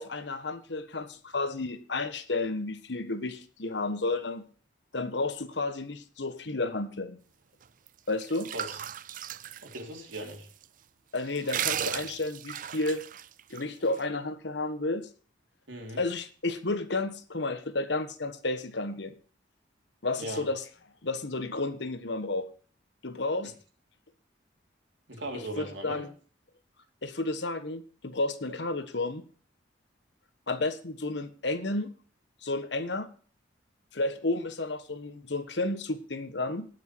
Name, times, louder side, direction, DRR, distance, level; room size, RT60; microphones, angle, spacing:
voice 1, 0.0-4.4 4.9-7.2 8.1-8.5 11.1-13.0 13.5-15.1 16.0-19.2 20.0-20.6 21.0-22.5 23.0-23.5 25.3-26.1 27.0-29.2 30.5-31.9 32.4-33.1 33.9-36.7, left 2 dB, 65° left, 11 dB, 1.3 m, -32 dB
sound 1, 7.9-10.3 10.6-10.7 11.1-13.6, right 10 dB, 45° right, 0.4 m, -35 dB
voice 2, 9.6-10.5 15.7-16.0 20.1-20.5 25.1-26.0, right 1 dB, 80° right, 2 dB, 3.4 m, -38 dB
18.5 x 6.3 x 4.6 m, 0.41 s
head